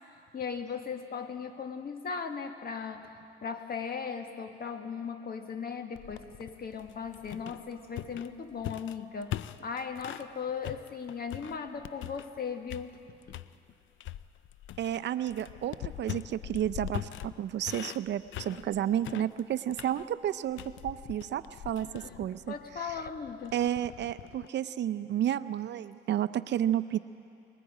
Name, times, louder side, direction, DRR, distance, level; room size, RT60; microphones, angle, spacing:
voice 1, 0.3-12.9 13.3-13.4 21.8-23.6, left 6 dB, 50° left, 6 dB, 1.6 m, -38 dB
sound 1, 5.9-10.3 10.6-12.4 12.7-13.5 14.0-24.5, left 13 dB, 75° left, 0.5 m, -42 dB
voice 2, 14.8-22.5 23.5-27.0, right 11 dB, 60° right, 13 dB, 0.6 m, -31 dB
25.5 x 22.5 x 5.0 m, 2.6 s
cardioid pair, 90°, 20 cm